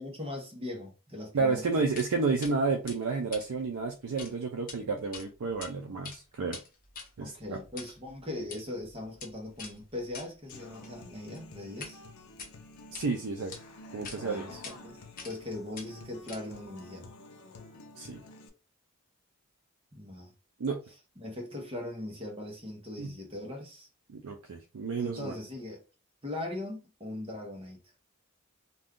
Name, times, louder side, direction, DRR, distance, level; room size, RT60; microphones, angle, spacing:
voice 1, 0.0-1.6 7.2-12.0 14.1-15.0 15.2-17.1 19.9-20.3 21.2-23.9 24.9-25.8 26.2-27.8, left 1 dB, 25° right, 0.9 m, -40 dB
voice 2, 1.3-6.6 7.2-7.6 12.9-13.5 13.9-14.6 18.0-18.2 20.6-20.8 23.0-23.1 24.1-25.3, right 4 dB, 80° right, 0.5 m, -31 dB
sound 1, 2.0-2.1 2.4-2.5 2.9-4.3 4.6-4.8 5.1-5.7 6.0-12.0 12.3-13.1 13.5-13.6 14.0-14.2 14.6-14.8 15.2-15.5 15.7-16.7, left 5 dB, 40° left, 0.7 m, -45 dB
Human voice / Acoustic guitar, 10.5-18.5, left 2 dB, 85° left, 0.6 m, -50 dB
2.6 x 2.3 x 3.6 m
head